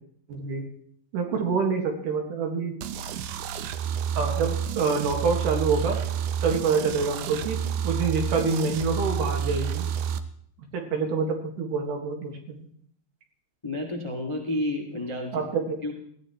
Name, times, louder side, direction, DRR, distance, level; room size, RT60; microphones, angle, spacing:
voice 1, 0.3-0.6 1.1-2.7 4.2-6.0 6.4-9.9 10.7-12.7 15.3-15.8, right 5 dB, 60° right, 2 dB, 3.1 m, -26 dB
sound 1, 2.8-10.2, right 8 dB, 80° right, 1.8 m, -30 dB
voice 2, 13.6-15.3 15.8-15.9, left 1 dB, 40° left, 1 dB, 0.4 m, -30 dB
18.5 x 15.0 x 3.1 m, 0.64 s
omnidirectional pair, 4.5 m